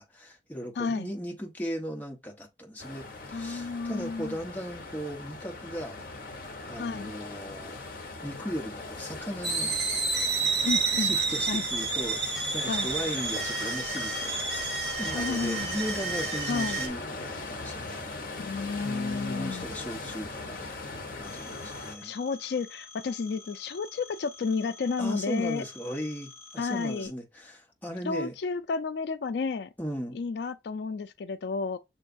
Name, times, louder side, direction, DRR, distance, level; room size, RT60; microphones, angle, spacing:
voice 1, 0.0-6.0 6.7-7.8 8.2-9.8 11.0-12.2 12.5-18.1 18.8-20.7 21.2-22.1 25.0-28.3 29.8-30.2, equal, 10° left, 0.9 m, -37 dB
voice 2, 0.8-1.1 3.3-4.4 6.8-7.1 10.6-11.1 11.5-11.6 12.7-12.9 15.1-15.7 16.5-16.8 18.4-19.7 22.0-25.6 26.6-27.1 28.1-29.7 30.1-31.8, left 4 dB, 75° left, 0.4 m, -31 dB
sound 1, 2.8-22.0, left 3 dB, 50° left, 0.8 m, -39 dB
sound 2, 9.4-16.9, right 4 dB, 75° right, 1.6 m, -30 dB
Telephone, 21.2-27.1, left 4 dB, 30° left, 2.0 m, -49 dB
6.8 x 3.1 x 2.5 m
head